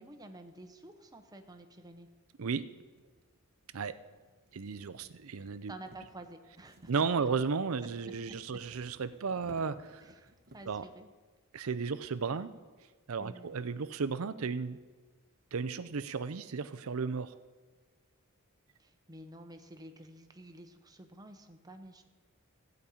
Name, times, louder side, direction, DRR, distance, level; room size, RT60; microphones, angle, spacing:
voice 1, 0.0-2.1 5.7-7.3 8.3-8.4 10.0-11.1 13.2-13.6 18.8-22.0, right 1 dB, 20° right, 6 dB, 0.9 m, -51 dB
sound 1, 2.1-2.2 2.9-10.9, right 1 dB, 50° right, 1.0 m, -58 dB
voice 2, 4.5-5.7 6.9-10.0 10.7-10.9 11.5-12.5 13.1-14.8 15.5-17.4, right 5 dB, 80° right, 13 dB, 0.6 m, -34 dB
14.5 x 5.3 x 8.4 m, 1.4 s
head